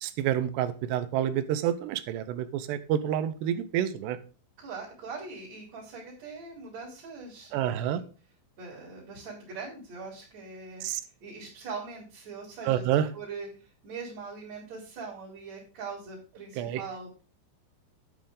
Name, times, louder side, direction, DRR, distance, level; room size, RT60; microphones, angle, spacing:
voice 1, 0.0-4.2 7.5-8.0 10.8-11.0 12.7-13.1 16.6-16.8, right 10 dB, 90° right, 13 dB, 2.9 m, -28 dB
voice 2, 4.6-8.0 8.6-10.8 11.2-12.9 13.1-17.2, right 4 dB, 40° right, -5 dB, 4.7 m, -41 dB
10.0 x 8.6 x 3.8 m, 0.36 s
omnidirectional pair, 4.8 m